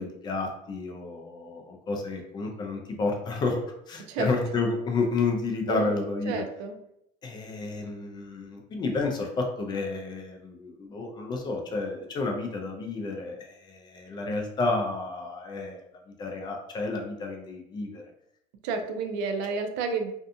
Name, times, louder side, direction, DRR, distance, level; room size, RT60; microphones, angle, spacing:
voice 1, 0.0-3.6 3.9-6.4 7.2-15.8 16.2-18.0, left 3 dB, 25° left, 2 dB, 0.4 m, -31 dB
voice 2, 5.7-6.7 18.6-20.1, right 4 dB, 90° right, 6 dB, 0.5 m, -31 dB
2.6 x 2.2 x 2.5 m, 0.77 s
cardioid pair, 160°, 16 cm